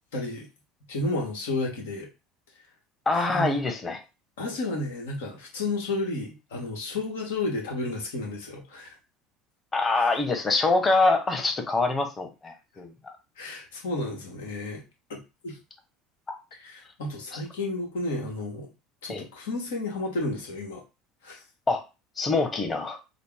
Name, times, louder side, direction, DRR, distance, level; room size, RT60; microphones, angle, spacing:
voice 1, 0.1-0.5 0.9-2.1 3.3-3.6 4.4-9.0 13.4-14.8 15.1-15.6 16.5-18.7 19.0-20.8 21.2-21.4, left 2 dB, 80° left, 1.4 m, -32 dB
voice 2, 3.1-4.0 9.7-13.1 16.3-16.4 19.1-19.2 21.7-21.8 22.2-23.0, left 3 dB, 25° left, 1.1 m, -25 dB
4.0 x 2.1 x 3.6 m
hypercardioid pair, 75°, 0 cm